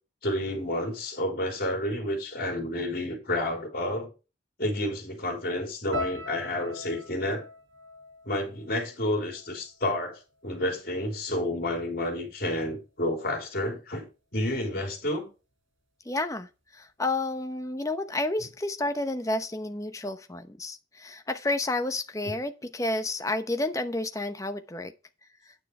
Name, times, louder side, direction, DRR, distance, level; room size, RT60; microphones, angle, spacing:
voice 1, 0.2-4.1 4.6-7.5 8.2-14.1 14.3-15.3, left 1 dB, 50° left, 3.7 m, -30 dB
sound 1, 5.9-10.1 10.4-11.2 11.8-12.0, left 1 dB, 90° right, 4.8 m, -40 dB
voice 2, 16.1-24.9, left 2 dB, 15° left, 0.8 m, -30 dB
9.5 x 6.5 x 4.7 m
head